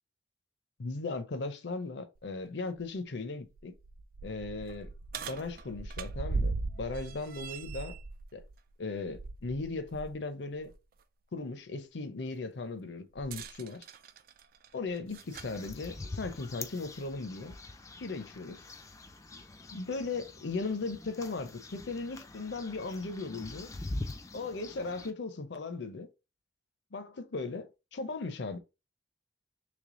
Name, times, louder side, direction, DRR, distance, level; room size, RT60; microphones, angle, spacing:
voice 1, 0.8-3.7 4.2-7.9 8.3-8.4 8.8-10.7 11.3-13.9 14.7-17.5 18.0-18.6 19.7-23.7 24.3-26.1 26.9-28.6, left 3 dB, 65° left, 0.6 m, -37 dB
sound 1, 2.2-2.3 2.8-2.9 3.4-10.1 10.6-10.7 13.2-15.6 16.6-16.7 17.5-17.6, right 3 dB, 50° right, 0.3 m, -39 dB
sound 2, 15.1-25.1, left 2 dB, 15° left, 0.4 m, -44 dB
3.3 x 3.2 x 3.7 m
head